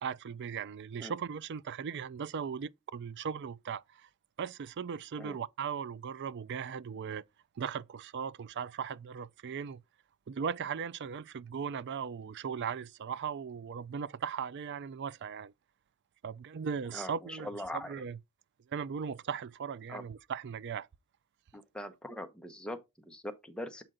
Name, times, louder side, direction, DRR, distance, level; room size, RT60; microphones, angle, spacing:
voice 1, 0.0-4.1 4.4-7.2 7.6-9.8 10.3-15.5 16.2-18.2 18.7-20.9, right 7 dB, 50° right, 0.4 m, -38 dB
voice 2, 16.9-18.0 19.9-20.0 21.5-23.8, left 1 dB, 5° left, 0.8 m, -42 dB
7.7 x 4.4 x 3.7 m
head